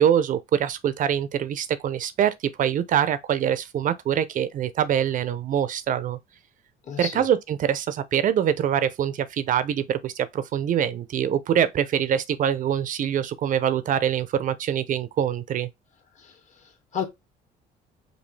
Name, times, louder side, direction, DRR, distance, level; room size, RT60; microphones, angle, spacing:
voice 1, 0.0-6.2 7.0-15.7, right 9 dB, 50° right, 0.6 m, -24 dB
voice 2, 6.8-7.2 16.1-17.0, left 8 dB, 45° left, 1.7 m, -33 dB
5.2 x 2.7 x 3.2 m
cardioid pair, 110°, 17 cm